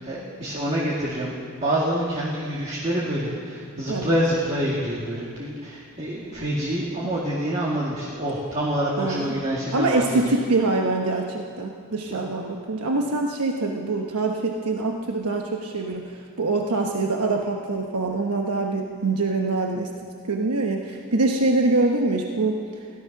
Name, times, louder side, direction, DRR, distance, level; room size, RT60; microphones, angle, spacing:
voice 1, 0.0-10.3 12.1-12.2, right 1 dB, 30° right, -7 dB, 2.1 m, -26 dB
voice 2, 9.0-9.3 9.7-19.9 20.2-22.6, right 3 dB, 85° right, 1 dB, 1.0 m, -24 dB
16.5 x 13.0 x 6.0 m, 2.1 s
head